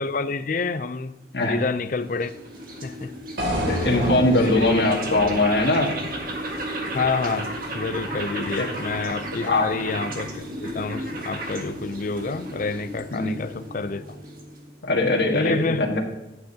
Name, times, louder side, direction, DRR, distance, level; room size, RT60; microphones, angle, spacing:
voice 1, 0.0-1.1 1.5-2.3 2.8-3.1 3.7-3.8 4.4-4.8 6.9-14.0 15.3-15.8, left 4 dB, 45° left, 0.5 m, -28 dB
sound 1, 1.4-14.8, right 1 dB, 50° right, 1.7 m, -34 dB
sound 2, 3.4-7.5, equal, 75° right, 3.0 m, -30 dB
voice 2, 3.7-5.9 8.4-8.7 9.4-9.7 13.1-13.3 14.8-16.0, left 2 dB, 65° left, 1.6 m, -21 dB
11.5 x 8.9 x 2.8 m
head